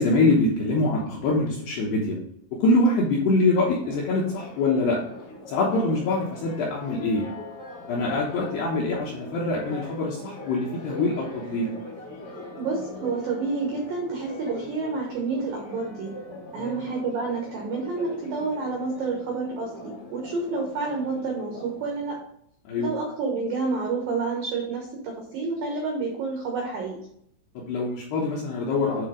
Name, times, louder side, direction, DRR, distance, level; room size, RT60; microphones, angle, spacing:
voice 1, 0.0-2.2 2.6-5.0 5.5-7.2 7.9-11.7 16.6-16.8 22.7-22.9 27.6-29.1, left 2 dB, 75° left, -3 dB, 2.4 m, -24 dB
Church bell, 3.8-22.2, left 2 dB, 50° left, 1.0 m, -41 dB
voice 2, 12.6-16.1 16.5-22.2 22.8-27.0, right 4 dB, 85° right, 0 dB, 2.0 m, -29 dB
9.3 x 3.4 x 5.0 m, 0.70 s
omnidirectional pair, 6.0 m